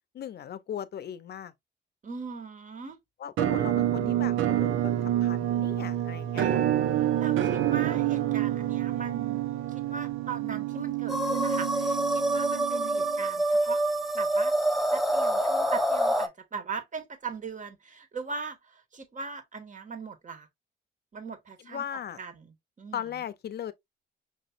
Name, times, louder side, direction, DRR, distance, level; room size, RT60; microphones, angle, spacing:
voice 1, 0.1-1.5 3.2-4.9 5.2-6.5 21.6-22.2 22.9-23.7, left 9 dB, 55° left, 0.7 m, -37 dB
voice 2, 2.0-3.0 7.0-9.4 9.7-13.8 14.1-14.5 14.9-20.5 21.1-21.8 22.2-23.0, right 5 dB, 40° right, 1.7 m, -39 dB
Musical instrument, 3.4-13.2, right 12 dB, 85° right, 0.9 m, -28 dB
sound 1, 11.1-16.3, right 1 dB, ahead, 0.8 m, -26 dB
5.9 x 3.0 x 2.5 m
cardioid pair, 90°, 20 cm